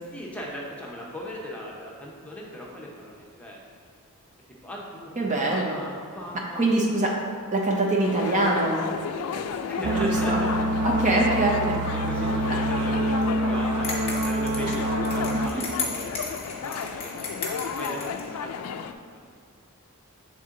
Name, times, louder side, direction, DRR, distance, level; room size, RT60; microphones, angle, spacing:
voice 1, 0.1-3.6 4.6-7.1 8.9-9.3 9.7-10.6 10.9-11.2 11.9-19.6, equal, 5° left, -4 dB, 0.8 m, -39 dB
voice 2, 5.2-5.8 6.6-7.1 7.5-8.8 9.9-10.4 10.8-11.9 12.5-12.6, right 2 dB, 35° right, -1 dB, 0.6 m, -24 dB
sound 1, 8.0-18.9, left 6 dB, 90° left, 0.3 m, -33 dB
sound 2, 9.8-15.5, right 1 dB, 85° right, 0.4 m, -26 dB
sound 3, 13.8-18.3, left 4 dB, 30° left, 1.1 m, -34 dB
7.4 x 3.7 x 3.7 m, 2.2 s
head